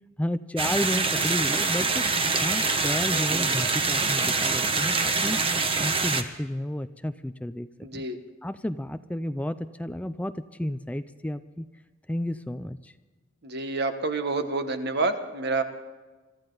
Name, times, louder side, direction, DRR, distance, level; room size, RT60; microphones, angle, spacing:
voice 1, 0.2-2.0 2.4-5.4 5.8-8.0 8.4-11.7 12.1-12.9, left 1 dB, 5° left, 11 dB, 0.4 m, -32 dB
sound 1, 0.6-6.2, right 4 dB, 30° right, 1.2 m, -25 dB
voice 2, 7.8-8.2 13.4-15.6, right 3 dB, 55° right, 7 dB, 1.4 m, -28 dB
24.5 x 14.0 x 4.0 m, 1.3 s
head